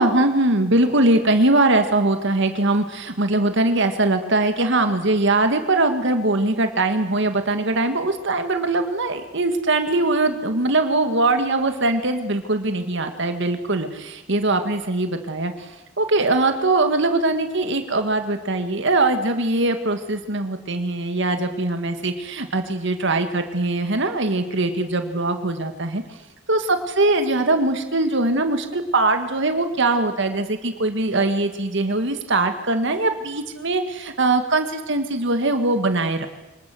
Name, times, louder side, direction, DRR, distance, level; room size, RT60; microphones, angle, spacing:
voice 1, 0.0-26.0 26.5-36.3, right 2 dB, 60° right, 7 dB, 1.8 m, -21 dB
25.5 x 20.0 x 7.8 m, 1.1 s
head